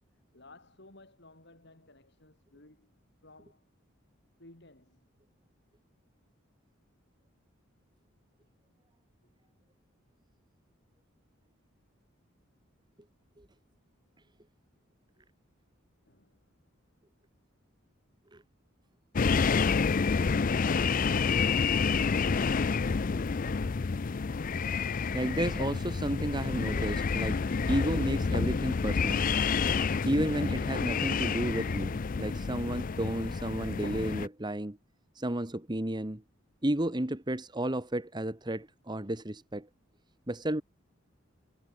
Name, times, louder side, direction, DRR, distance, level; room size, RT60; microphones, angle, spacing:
voice 1, 0.1-3.6 4.4-5.1 9.2-9.5 16.0-16.5, left 2 dB, 55° left, 5.0 m, -57 dB
sound 1, 19.2-34.3, left 5 dB, 40° left, 0.4 m, -29 dB
voice 2, 25.1-29.3 30.0-34.8 35.1-36.2 36.6-39.7 40.3-40.6, right 1 dB, 20° right, 1.4 m, -32 dB
head